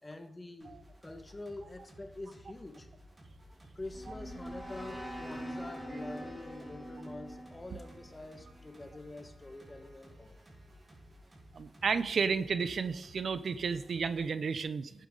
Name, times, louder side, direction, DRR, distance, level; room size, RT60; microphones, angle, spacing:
voice 1, 0.0-2.9 3.7-10.3, left 2 dB, 25° left, 7 dB, 1.7 m, -46 dB
sound 1, 0.6-14.3, equal, 30° right, 4.4 m, -56 dB
sound 2, 3.5-8.7, equal, ahead, 4.9 m, -44 dB
voice 2, 11.5-15.1, right 5 dB, 70° right, 13 dB, 0.7 m, -32 dB
11.5 x 9.1 x 3.9 m, 0.84 s
cardioid pair, 70°, 0 cm